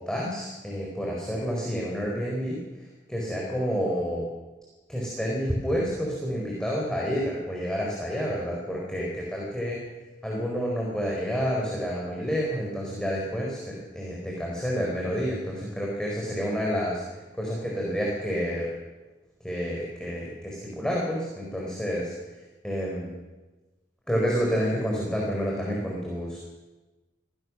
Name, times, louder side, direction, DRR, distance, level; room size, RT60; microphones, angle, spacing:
voice 1, 0.0-4.2 4.9-9.8 10.2-18.7 19.4-22.1 22.6-23.2 24.1-26.4, equal, 5° left, -4 dB, 4.7 m, -29 dB
26.0 x 17.5 x 6.4 m, 1.2 s
head